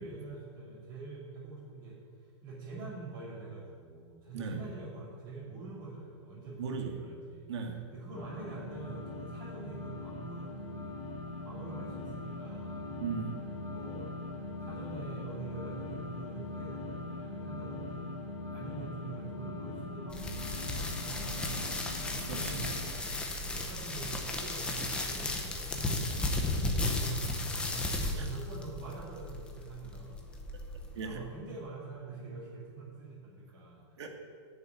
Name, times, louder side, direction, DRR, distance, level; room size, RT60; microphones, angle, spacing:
voice 1, 0.0-7.5 7.9-11.0 11.4-12.9 13.7-14.1 14.6-18.1 18.5-21.7 22.3-30.3 31.0-34.0, right 3 dB, 30° right, -11 dB, 3.0 m, -45 dB
voice 2, 6.6-7.0 7.5-7.9 13.0-13.3 22.3-22.8 26.8-27.0 28.2-28.3 30.9-31.2 34.0-34.1, right 5 dB, 70° right, 3 dB, 2.0 m, -37 dB
sound 1, 8.1-22.9, left 2 dB, 25° left, 3.1 m, -41 dB
sound 2, 20.1-31.1, left 2 dB, 5° left, 0.7 m, -35 dB
8.9 x 6.9 x 8.9 m, 2.1 s
supercardioid pair, 170°, 15 cm